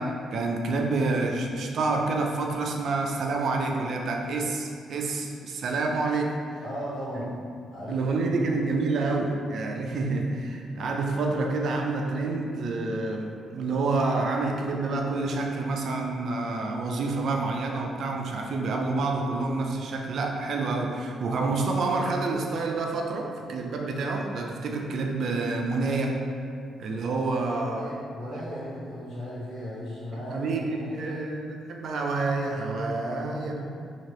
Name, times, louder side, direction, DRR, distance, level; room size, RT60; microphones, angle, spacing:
voice 1, 0.0-6.6 7.2-7.4 7.9-26.2 26.8-27.8 30.1-31.4 31.7-33.7, right 3 dB, 65° right, 2 dB, 0.4 m, -28 dB
voice 2, 6.6-7.3 7.7-8.3 27.7-31.2 33.1-33.7, equal, 75° left, -8 dB, 1.1 m, -37 dB
2.9 x 2.8 x 2.9 m, 2.3 s
supercardioid pair, 60°, 0 cm